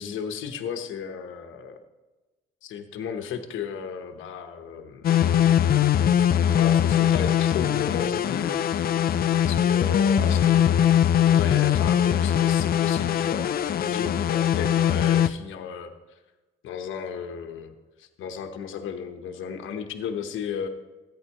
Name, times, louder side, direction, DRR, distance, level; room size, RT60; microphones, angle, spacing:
voice 1, 0.0-1.8 2.6-5.1 6.6-8.6 9.5-15.9 16.6-20.7, left 7 dB, 80° left, 6 dB, 1.0 m, -34 dB
sound 1, 5.0-15.3, left 9 dB, 50° left, 0.5 m, -21 dB
14.5 x 9.2 x 3.0 m, 1.2 s
cardioid pair, 90°, 20 cm